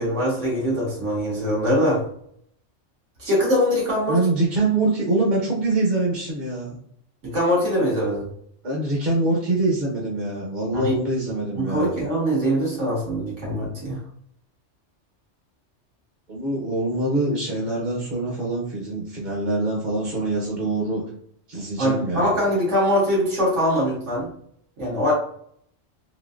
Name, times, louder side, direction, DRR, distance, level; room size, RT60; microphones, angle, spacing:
voice 1, 0.0-2.0 3.2-4.2 7.2-8.3 10.7-11.0 11.6-14.0 21.8-24.3 24.8-25.1, equal, 80° right, -5 dB, 1.8 m, -22 dB
voice 2, 4.1-6.8 8.6-11.9 16.3-21.0 21.5-22.3, right 2 dB, 45° right, -4 dB, 0.8 m, -24 dB
3.8 x 2.6 x 2.4 m, 0.66 s
omnidirectional pair, 1.2 m